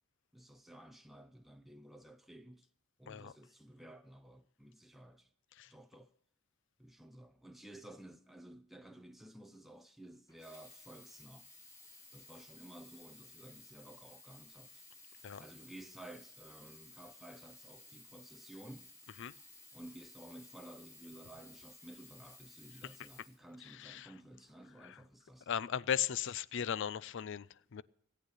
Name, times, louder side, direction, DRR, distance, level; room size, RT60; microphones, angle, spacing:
voice 1, 0.3-2.7 3.0-5.3 5.7-6.1 6.8-11.5 12.1-14.8 15.4-18.9 19.7-25.5, right 1 dB, ahead, 0.6 m, -54 dB
Sink (filling or washing), 10.3-24.1 24.8-24.9, left 2 dB, 15° left, 3.2 m, -57 dB
voice 2, 23.6-24.1 24.8-25.0 25.5-27.8, left 9 dB, 60° left, 0.5 m, -37 dB
17.0 x 8.7 x 6.4 m
head